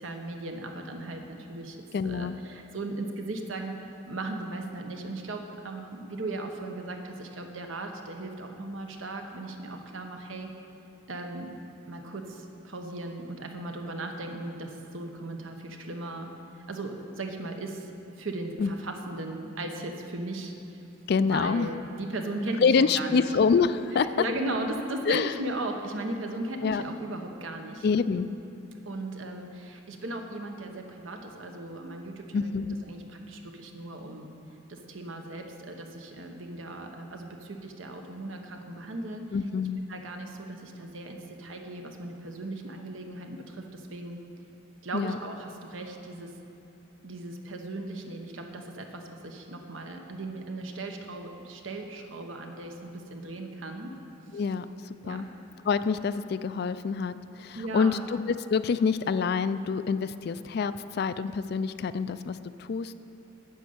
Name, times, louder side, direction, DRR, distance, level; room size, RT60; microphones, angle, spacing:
voice 1, 0.0-3.8 4.0-10.5 11.1-11.6 11.9-16.3 16.7-17.9 18.2-20.5 21.2-23.2 23.9-27.9 28.9-32.5 32.9-34.3 34.7-39.2 39.9-44.2 44.8-46.3 47.0-53.9 55.0-55.2 57.5-58.0, right 2 dB, 80° right, 4 dB, 1.1 m, -37 dB
voice 2, 1.9-2.4 18.6-18.7 21.1-21.7 22.6-24.1 25.1-25.3 26.6-26.8 27.8-28.3 32.3-32.8 39.3-39.8 44.9-45.2 54.3-54.7 55.0-55.3 55.7-62.9, left 5 dB, 55° left, 13 dB, 0.3 m, -26 dB
9.3 x 6.5 x 8.6 m, 2.9 s
head